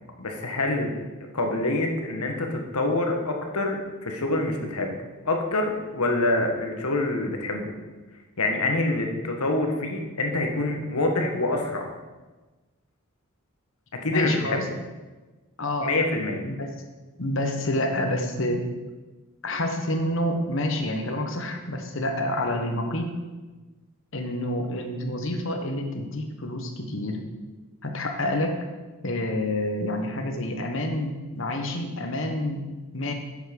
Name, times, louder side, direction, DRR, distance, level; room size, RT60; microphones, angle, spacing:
voice 1, 0.2-0.9 1.3-4.9 5.2-7.7 8.4-11.9 13.9-14.7 15.8-16.4, left 2 dB, 85° left, 3 dB, 1.4 m, -26 dB
voice 2, 14.1-14.6 15.6-15.9 16.4-16.7 17.2-18.6 19.4-23.1 24.1-27.2 27.8-28.6 29.0-32.6 32.9-33.1, left 1 dB, 55° left, 4 dB, 1.2 m, -28 dB
8.2 x 7.4 x 5.3 m, 1.2 s
head